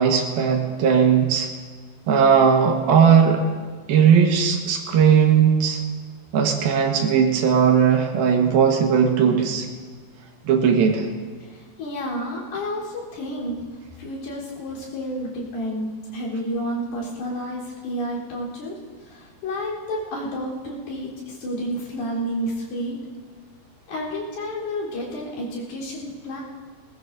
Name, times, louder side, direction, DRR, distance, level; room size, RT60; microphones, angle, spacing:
voice 1, 0.0-1.5 2.1-3.4 3.9-5.8 6.3-9.7 10.4-11.1, right 7 dB, 80° right, 3 dB, 3.2 m, -18 dB
voice 2, 11.5-13.6 14.0-18.8 19.1-23.0 23.9-26.4, equal, 85° left, -6 dB, 5.6 m, -30 dB
20.0 x 19.5 x 2.7 m, 1.5 s
omnidirectional pair, 4.3 m